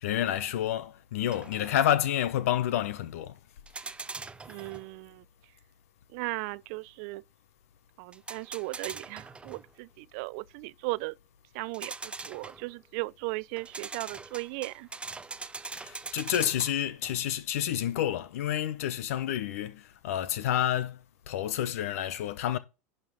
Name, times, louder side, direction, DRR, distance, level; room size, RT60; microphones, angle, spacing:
voice 1, 0.0-3.4 15.7-22.6, left 11 dB, 70° left, 1.1 m, -29 dB
sound 1, 1.3-1.9 3.7-4.9 8.1-9.7 11.7-12.8 13.6-17.2, right 4 dB, 15° right, 0.6 m, -42 dB
voice 2, 4.5-5.2 6.1-7.2 8.0-11.2 11.5-14.9, right 24 dB, 60° right, 0.5 m, -37 dB
11.0 x 5.6 x 3.9 m
hypercardioid pair, 95°, 8 cm